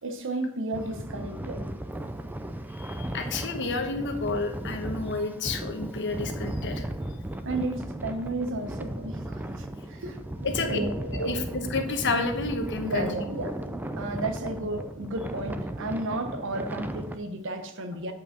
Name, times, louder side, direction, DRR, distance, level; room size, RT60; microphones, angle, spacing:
voice 1, 0.0-1.7 7.4-11.4 12.8-18.1, right 2 dB, 60° right, 7 dB, 0.9 m, -33 dB
sound 1, 0.7-17.2, right 1 dB, 10° right, 0.4 m, -36 dB
voice 2, 2.7-6.9 10.4-10.8 11.2-13.1, left 3 dB, 55° left, 5 dB, 1.1 m, -30 dB
8.5 x 5.2 x 5.2 m, 0.84 s
head